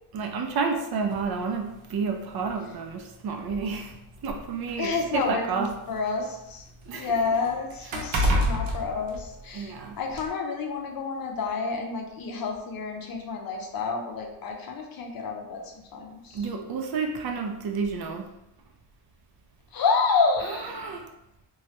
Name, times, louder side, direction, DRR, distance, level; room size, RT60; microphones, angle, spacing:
voice 1, 0.1-5.8 6.9-7.2 8.0-8.1 9.5-10.0 16.3-18.3 20.5-21.1, right 5 dB, 55° right, 3 dB, 0.5 m, -30 dB
sound 1, 1.1-1.3 2.3-2.4 2.9-3.0 4.0-5.9 6.3-9.7 10.1-10.3, equal, 80° right, 0.8 m, -29 dB
voice 2, 4.8-6.6 6.9-16.4 19.7-20.7, left 4 dB, 50° left, 2 dB, 0.6 m, -29 dB
3.0 x 2.3 x 2.8 m, 0.86 s
cardioid pair, 115°, 46 cm